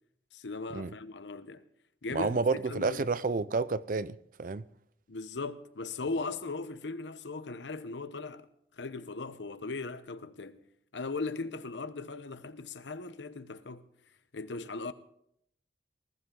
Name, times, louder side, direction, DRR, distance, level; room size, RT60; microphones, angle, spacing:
voice 1, 0.3-1.6 2.0-2.4 2.7-3.1 5.1-8.5 8.8-10.6 10.9-13.9 14.3-14.9, left 3 dB, 90° left, 0.9 m, -38 dB
voice 2, 2.1-4.6, right 4 dB, 50° right, 0.5 m, -30 dB
20.0 x 14.5 x 3.8 m
head